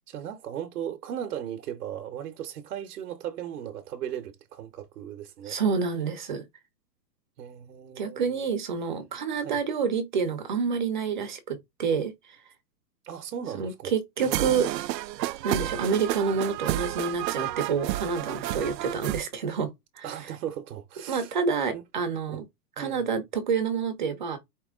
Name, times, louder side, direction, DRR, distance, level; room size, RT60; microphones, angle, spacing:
voice 1, 0.0-5.6 7.4-8.5 9.4-9.6 13.0-13.9 14.2-14.8 20.0-21.4 21.7-21.8 22.3-22.4 22.8-23.2, right 10 dB, 65° right, 0.8 m, -37 dB
voice 2, 5.5-6.4 8.0-12.1 13.6-14.7 15.4-20.0 21.1-22.4 22.8-24.4, right 5 dB, 30° right, 0.7 m, -28 dB
sound 1, 14.2-19.2, right 15 dB, 85° right, 0.6 m, -31 dB
4.6 x 2.9 x 3.5 m
hypercardioid pair, 180°, 49 cm